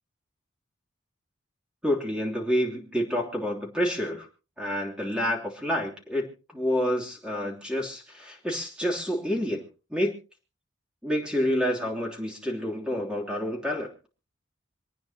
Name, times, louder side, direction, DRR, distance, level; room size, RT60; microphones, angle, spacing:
voice 1, 1.8-4.3 4.6-9.6 9.9-10.2 11.0-14.1, equal, 5° right, -1 dB, 3.1 m, -28 dB
27.5 x 9.3 x 2.9 m, 0.33 s
head